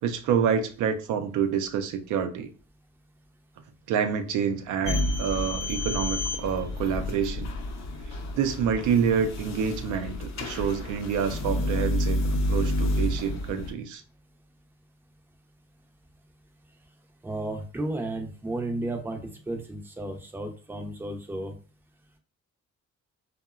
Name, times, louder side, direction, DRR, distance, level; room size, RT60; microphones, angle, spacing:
voice 1, 0.0-2.5 3.9-7.5 8.1-14.0, right 7 dB, 80° right, 0.5 m, -27 dB
sound 1, 4.8-13.7, left 1 dB, 60° left, 0.6 m, -29 dB
voice 2, 17.2-21.5, right 2 dB, 5° right, 0.4 m, -33 dB
2.8 x 2.1 x 2.3 m
cardioid pair, 90°, 30 cm